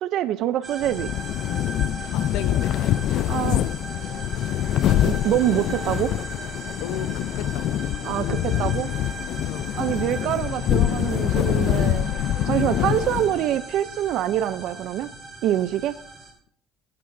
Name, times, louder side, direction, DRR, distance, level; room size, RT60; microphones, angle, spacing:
voice 1, 0.0-1.1 3.3-3.6 5.0-6.1 8.0-8.9 9.8-12.1 12.5-15.1 15.4-16.0, right 12 dB, 60° right, 13 dB, 0.5 m, -25 dB
sound 1, 0.6-16.3, right 3 dB, 10° right, 4.0 m, -38 dB
sound 2, 0.8-13.6, left 12 dB, 55° left, 0.4 m, -25 dB
voice 2, 2.1-2.9 3.1-3.6 6.8-7.7 8.2-8.3 9.5-9.7 12.8-13.0, left 11 dB, 80° left, 13 dB, 0.8 m, -34 dB
22.0 x 9.5 x 2.6 m, 0.64 s
cardioid pair, 135°, 0 cm